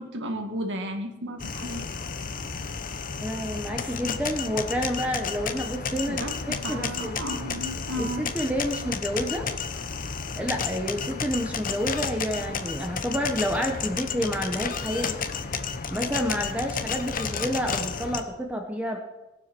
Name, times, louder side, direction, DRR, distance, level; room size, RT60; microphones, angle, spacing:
voice 1, 0.0-1.9 2.3-2.4 6.1-8.3, equal, 60° right, 4 dB, 2.0 m, -34 dB
sound 1, 1.4-18.2, left 5 dB, 40° left, 0.9 m, -32 dB
voice 2, 3.2-7.2 8.0-9.5 10.4-15.2 15.9-19.0, equal, 5° right, 3 dB, 1.2 m, -29 dB
19.0 x 7.4 x 6.1 m, 1.0 s
head